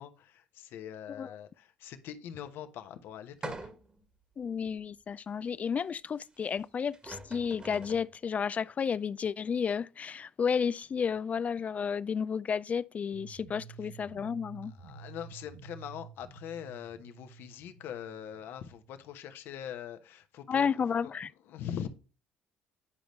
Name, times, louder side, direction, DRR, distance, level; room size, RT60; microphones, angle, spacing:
voice 1, 0.0-3.7 13.8-13.9 14.6-20.7 21.0-21.1 21.5-21.9, left 9 dB, 65° left, 1.0 m, -42 dB
sound 1, 3.4-4.0 4.7-4.8 6.6-6.7 6.9-8.1, right 3 dB, 25° right, 1.5 m, -43 dB
voice 2, 4.4-14.7 20.5-21.3, left 6 dB, 35° left, 0.3 m, -32 dB
sound 2, 13.1-19.1, right 6 dB, 90° right, 2.2 m, -51 dB
9.9 x 5.2 x 3.1 m
hypercardioid pair, 65°, 4 cm